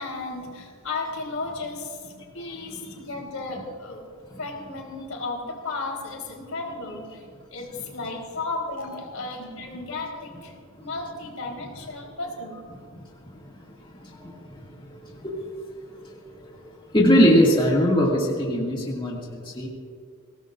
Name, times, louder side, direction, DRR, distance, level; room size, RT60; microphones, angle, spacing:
voice 1, 0.0-4.0 4.4-7.2 7.5-10.5 10.8-12.6, left 3 dB, 85° left, -1 dB, 3.9 m, -34 dB
voice 2, 2.4-2.9 4.3-4.4 14.0-14.3 14.7-15.4 16.4-16.6 16.9-19.7, equal, 25° left, -3 dB, 2.2 m, -22 dB
23.5 x 18.0 x 2.6 m, 2.3 s
head